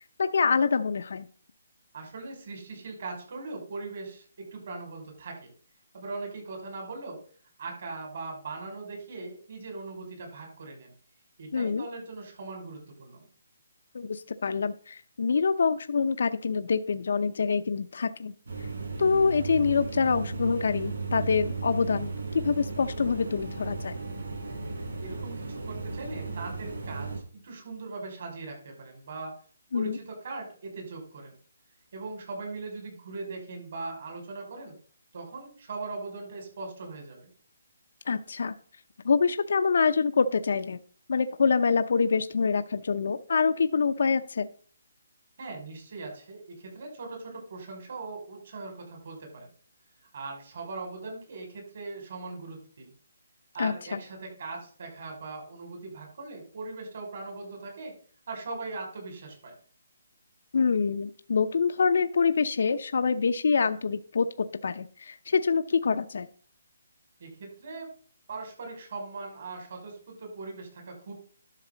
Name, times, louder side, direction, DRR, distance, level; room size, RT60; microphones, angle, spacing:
voice 1, 0.2-1.3 11.5-11.8 13.9-18.3 19.0-23.9 29.7-30.0 38.1-38.5 39.0-40.8 41.1-44.5 53.6-53.7 60.5-66.3, left 5 dB, 60° left, 10 dB, 0.7 m, -26 dB
voice 2, 1.9-5.5 5.9-7.2 7.6-10.9 11.4-13.3 25.0-29.3 29.7-31.4 31.9-34.8 35.1-37.3 45.4-49.5 50.1-52.9 53.5-57.9 58.3-59.5 67.2-67.9 68.3-71.1, right 3 dB, 50° right, 2 dB, 5.6 m, -40 dB
sound 1, 18.5-27.2, right 4 dB, 85° right, 4.9 m, -35 dB
11.5 x 6.7 x 3.9 m, 0.43 s
hypercardioid pair, 170°, 0 cm